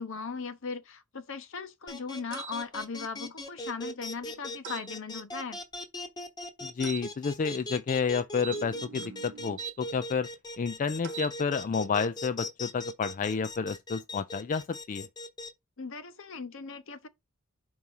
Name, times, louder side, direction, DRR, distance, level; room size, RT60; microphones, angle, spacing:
voice 1, 0.0-5.6 15.8-17.1, left 5 dB, 60° left, 0.8 m, -38 dB
sound 1, 1.9-15.5, left 1 dB, 20° left, 0.9 m, -39 dB
sound 2, 2.3-2.6 4.6-4.9 6.8-7.1 8.4-9.8 11.0-11.4, right 9 dB, 55° right, 0.6 m, -41 dB
voice 2, 6.6-10.3 10.6-15.1, left 5 dB, 35° left, 0.3 m, -30 dB
4.7 x 4.1 x 5.4 m
head